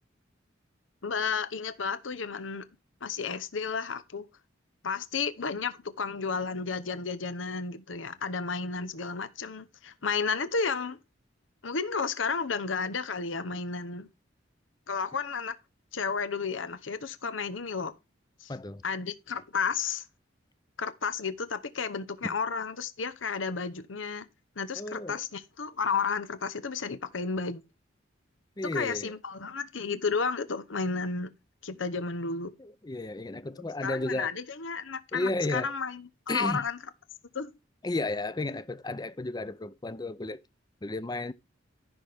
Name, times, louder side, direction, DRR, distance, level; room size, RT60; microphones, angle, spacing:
voice 1, 1.0-2.6 3.0-4.3 4.8-11.0 11.6-14.1 14.9-15.5 15.9-17.9 18.4-18.5 18.8-20.0 20.8-24.3 24.6-27.6 28.7-31.3 31.6-32.5 33.8-36.8 37.3-37.5, left 5 dB, 85° left, 0.9 m, -32 dB
voice 2, 18.5-18.8 24.7-25.2 28.6-29.1 32.6-34.3 35.1-35.7 36.3-36.7 37.8-40.4 40.8-41.3, left 2 dB, 20° left, 0.5 m, -33 dB
14.0 x 6.2 x 3.5 m
head